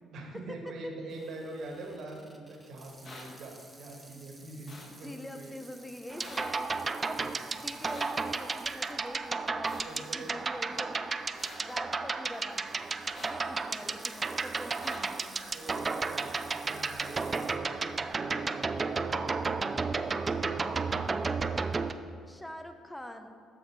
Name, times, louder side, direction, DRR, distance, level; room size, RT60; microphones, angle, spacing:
voice 1, 0.0-5.6 7.2-7.5 9.8-10.3 15.5-21.5, right 2 dB, 65° right, 1 dB, 1.8 m, -45 dB
Water tap faucet / Sink (filling or washing), 1.1-9.5 10.0-10.1 10.8-11.1 12.7-17.6, right 1 dB, 10° right, 1.3 m, -54 dB
sound 1, 3.0-3.2 4.7-4.9 6.2-6.4 7.9-8.1 9.6-9.8 11.4-11.6 13.1-13.3 14.8-15.0, left 2 dB, 50° left, 2.3 m, -46 dB
voice 2, 4.6-6.7 7.0-11.1 11.6-15.5 20.8-21.2 22.3-23.3, left 1 dB, 10° left, 6 dB, 1.0 m, -45 dB
sound 2, 6.1-21.9, right 4 dB, 35° right, 0.4 m, -33 dB
13.0 x 4.9 x 4.8 m, 2.4 s
supercardioid pair, 70°, 0 cm